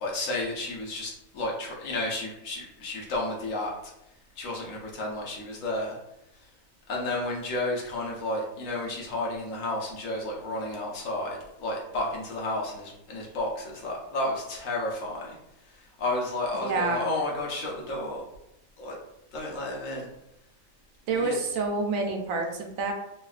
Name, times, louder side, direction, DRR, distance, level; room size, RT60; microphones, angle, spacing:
voice 1, 0.0-3.9 4.4-6.0 6.9-15.4 15.6-18.2 18.8-19.0 19.3-20.1 21.1-21.4, left 2 dB, 80° left, -2 dB, 1.1 m, -32 dB
voice 2, 16.6-17.0 21.1-22.9, right 3 dB, 85° right, 3 dB, 1.0 m, -28 dB
3.2 x 2.2 x 2.4 m, 0.85 s
omnidirectional pair, 1.4 m